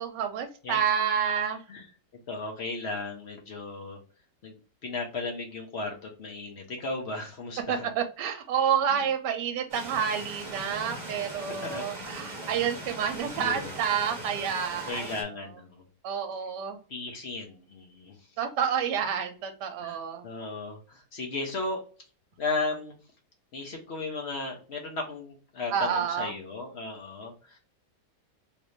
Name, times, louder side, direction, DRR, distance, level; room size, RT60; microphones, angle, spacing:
voice 1, 0.0-1.6 7.7-15.1 16.0-16.8 18.4-20.3 25.7-26.3, right 7 dB, 75° right, 6 dB, 1.3 m, -29 dB
voice 2, 2.3-4.0 4.4-7.9 8.9-9.1 11.6-11.8 13.3-13.7 14.9-15.9 16.9-18.2 19.8-21.8 22.4-23.0 23.5-27.6, left 3 dB, 55° left, 2 dB, 0.8 m, -35 dB
sound 1, 9.7-15.2, right 1 dB, 30° right, 0.9 m, -40 dB
3.2 x 2.5 x 3.0 m, 0.38 s
omnidirectional pair, 1.9 m